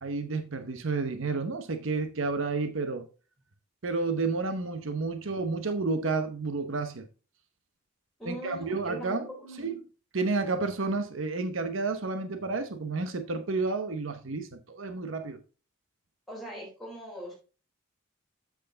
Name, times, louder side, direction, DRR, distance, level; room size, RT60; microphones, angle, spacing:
voice 1, 0.0-3.1 3.8-7.0 8.2-9.3 9.6-9.8 10.1-15.4, right 3 dB, 85° right, 0.9 m, -31 dB
voice 2, 8.2-9.8 16.3-17.3, equal, ahead, 4.0 m, -41 dB
7.8 x 6.4 x 3.9 m
head